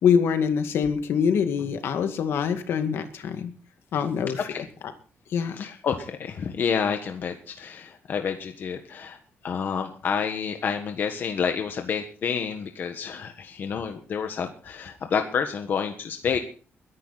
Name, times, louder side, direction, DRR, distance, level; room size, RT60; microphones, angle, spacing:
voice 1, 0.0-3.5 3.9-4.5 5.3-5.7, left 7 dB, 70° left, 8 dB, 2.1 m, -24 dB
voice 2, 5.6-9.2 9.4-16.4, left 6 dB, 50° left, 5 dB, 1.5 m, -29 dB
22.0 x 11.0 x 4.2 m, 0.40 s
wide cardioid pair, 165°, 4 cm